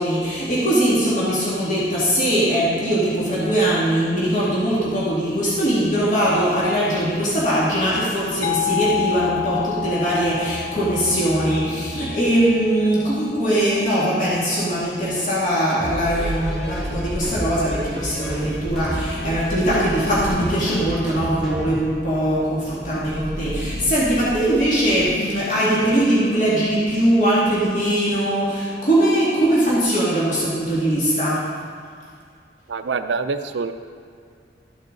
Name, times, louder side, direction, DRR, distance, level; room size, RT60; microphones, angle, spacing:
voice 1, 0.0-31.5, right 1 dB, 45° left, -8 dB, 2.3 m, -21 dB
sound 1, 8.4-13.9, left 13 dB, 90° left, 0.5 m, -30 dB
sound 2, 15.7-21.9, equal, ahead, 1.7 m, -32 dB
sound 3, 16.0-25.1, equal, 65° left, 1.8 m, -33 dB
voice 2, 32.7-33.7, right 4 dB, 85° right, 9 dB, 0.5 m, -25 dB
13.5 x 6.3 x 3.9 m, 2.2 s
head